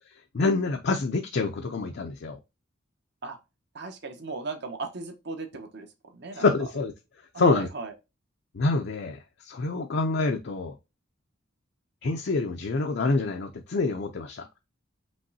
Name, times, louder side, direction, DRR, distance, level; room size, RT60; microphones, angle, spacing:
voice 1, 0.3-2.4 6.4-6.9 7.4-7.7 8.5-10.8 12.0-14.5, left 3 dB, 55° left, 0.5 m, -26 dB
voice 2, 3.7-6.5 7.3-7.9, right 3 dB, 55° right, 1.0 m, -36 dB
5.3 x 3.1 x 2.7 m
head